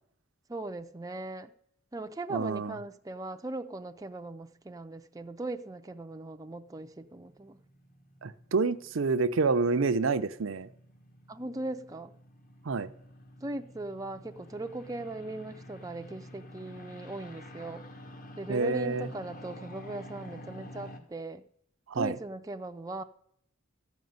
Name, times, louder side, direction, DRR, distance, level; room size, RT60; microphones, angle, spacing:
voice 1, 0.5-1.5 1.9-7.6 11.3-12.1 13.4-17.8 18.4-21.5 21.9-23.0, right 2 dB, 15° right, 0.5 m, -39 dB
voice 2, 2.3-2.8 8.2-10.7 12.7-12.9 18.5-19.1 21.9-22.2, right 4 dB, 75° right, 0.6 m, -28 dB
sound 1, 6.4-21.0, left 1 dB, 40° left, 1.5 m, -49 dB
13.5 x 5.3 x 9.4 m
head